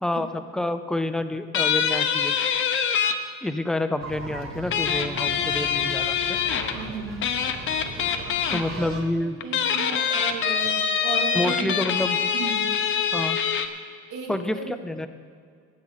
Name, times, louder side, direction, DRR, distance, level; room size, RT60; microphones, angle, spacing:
voice 1, 0.0-2.3 3.4-6.4 8.5-9.4 11.3-12.2 13.1-13.4 14.3-15.1, left 1 dB, ahead, 9 dB, 0.4 m, -28 dB
sound 1, 1.5-3.1 4.7-6.8 7.2-8.6 9.4-13.7, left 7 dB, 45° left, 0.8 m, -24 dB
sound 2, 4.0-9.0, right 3 dB, 45° right, 1.6 m, -38 dB
voice 2, 6.7-7.3 8.8-11.8 12.3-12.7 14.1-14.7, right 4 dB, 85° right, 0 dB, 2.8 m, -35 dB
20.0 x 8.4 x 4.0 m, 2.2 s
cardioid pair, 160°, 29 cm